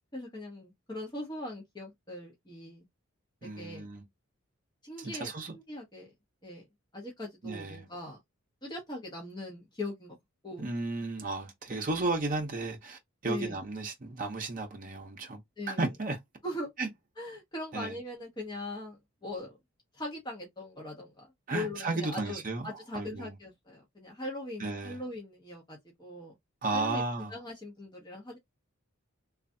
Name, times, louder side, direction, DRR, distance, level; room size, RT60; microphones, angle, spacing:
voice 1, 0.1-2.9 3.4-3.9 4.8-6.1 6.4-6.6 6.9-8.2 8.6-10.2 10.4-10.7 13.2-13.6 15.6-15.9 16.4-16.7 17.2-19.6 19.9-26.3 26.7-27.0 27.3-28.4, left 1 dB, 20° left, 0.8 m, -40 dB
voice 2, 3.4-4.0 5.0-5.5 7.4-7.9 10.6-15.4 15.7-16.2 16.8-16.9 17.7-18.0 21.5-23.4 24.6-25.0 26.6-27.4, right 3 dB, 40° right, 0.6 m, -34 dB
3.1 x 2.4 x 2.6 m
head